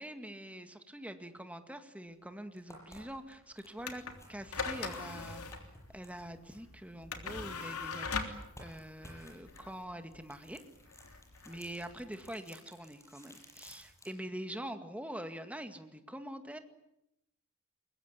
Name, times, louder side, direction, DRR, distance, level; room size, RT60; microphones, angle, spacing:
voice 1, 0.0-4.0 4.3-5.5 5.9-10.6 11.5-16.6, right 1 dB, 5° right, 7 dB, 2.0 m, -44 dB
sound 1, 2.1-2.2 2.6-7.9 8.4-14.2, left 1 dB, 15° left, 7.5 m, -56 dB
sound 2, 3.8-12.3, left 4 dB, 85° left, 3.3 m, -41 dB
23.5 x 22.0 x 9.7 m, 0.84 s
head